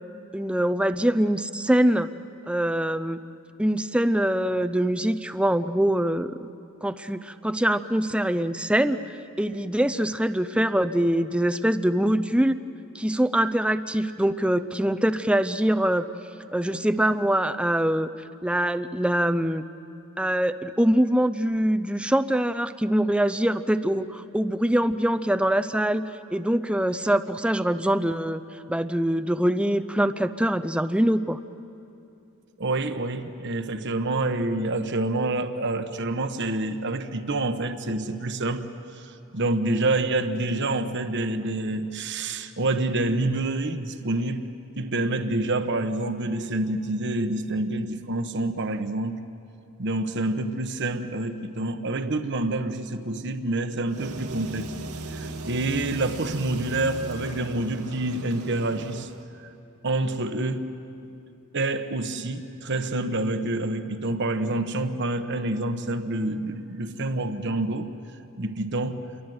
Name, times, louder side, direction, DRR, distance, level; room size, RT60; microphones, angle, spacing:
voice 1, 0.3-2.1 2.5-3.2 3.6-6.5 6.8-12.6 12.9-16.0 16.5-19.6 20.2-26.0 26.3-31.4, right 1 dB, 5° right, 12 dB, 0.6 m, -24 dB
voice 2, 32.6-38.7 38.9-44.5 44.8-49.2 49.8-54.7 55.1-59.1 59.4-59.5 59.8-60.7 61.5-67.9 68.4-69.1, right 2 dB, 55° right, 8 dB, 1.1 m, -27 dB
sound 1, 53.9-59.2, right 2 dB, 85° right, 1.9 m, -37 dB
28.5 x 23.0 x 7.9 m, 2.7 s
head